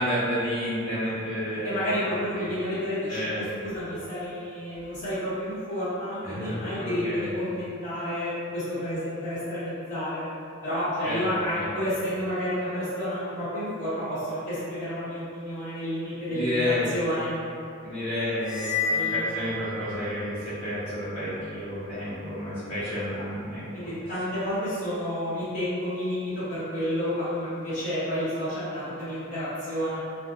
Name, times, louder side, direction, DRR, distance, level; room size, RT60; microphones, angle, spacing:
voice 1, 0.0-2.5 3.1-3.7 6.2-7.4 11.0-11.3 11.5-11.7 16.3-16.9 17.8-23.6, left 1 dB, 50° left, -16 dB, 0.7 m, -30 dB
voice 2, 1.6-10.2 10.6-16.6 16.9-17.3 18.9-19.3 23.7-30.0, equal, 35° left, -14 dB, 1.0 m, -30 dB
sound 1, 18.4-20.3, left 4 dB, 35° right, 0.9 m, -30 dB
2.2 x 2.1 x 2.9 m, 2.6 s
head